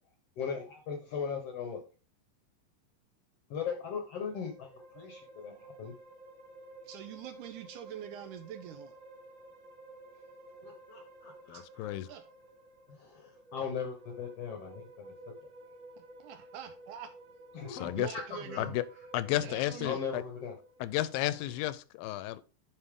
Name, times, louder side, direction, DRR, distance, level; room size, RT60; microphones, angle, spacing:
voice 1, 0.4-1.8 3.5-4.7 4.9-5.9 10.6-11.9 13.0-15.1 17.5-17.9 18.4-18.8 19.3-19.4 19.8-20.5, left 6 dB, 65° left, 1.5 m, -38 dB
sound 1, 4.2-21.8, right 1 dB, 25° right, 3.6 m, -53 dB
voice 2, 6.8-8.9 11.5-11.6 12.1-12.2 16.2-17.1 18.0-18.7 19.3-20.0, right 10 dB, 80° right, 1.9 m, -44 dB
voice 3, 11.5-12.1 17.7-18.1 18.6-18.8 19.1-20.2 20.8-22.4, left 15 dB, 85° left, 2.3 m, -32 dB
9.8 x 5.3 x 3.6 m
omnidirectional pair, 4.1 m